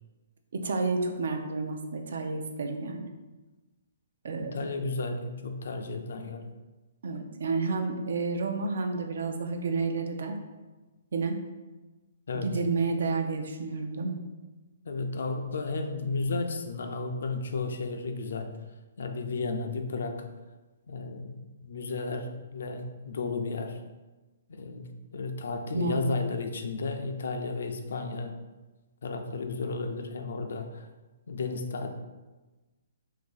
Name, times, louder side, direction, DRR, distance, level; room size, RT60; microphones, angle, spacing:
voice 1, 0.5-3.1 4.2-4.5 7.0-10.4 11.1-11.4 12.3-14.2 25.7-26.0, right 3 dB, 70° right, 4 dB, 0.5 m, -30 dB
voice 2, 4.4-6.5 12.3-12.5 14.9-18.6 19.0-20.3 20.9-23.8 24.5-28.4 29.0-30.9 31.3-31.9, left 3 dB, 70° left, 5 dB, 0.4 m, -33 dB
2.6 x 2.6 x 3.9 m, 1.2 s
hypercardioid pair, 155°, 0 cm